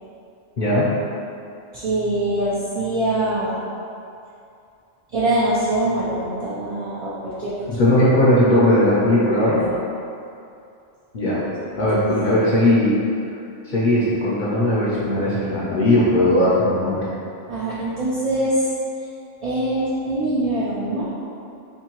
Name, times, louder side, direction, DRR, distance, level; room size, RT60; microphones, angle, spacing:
voice 1, 0.6-0.9 7.7-9.6 11.1-11.4 11.8-13.0 13.6-17.1, left 1 dB, 50° left, -8 dB, 0.7 m, -18 dB
voice 2, 1.7-3.6 5.1-7.9 9.6-9.7 11.4-11.5 11.9-12.0 17.5-18.7 19.0-19.1 19.4-21.0, right 1 dB, 45° right, -10 dB, 0.5 m, -23 dB
4.5 x 2.7 x 2.9 m, 2.6 s
omnidirectional pair, 1.2 m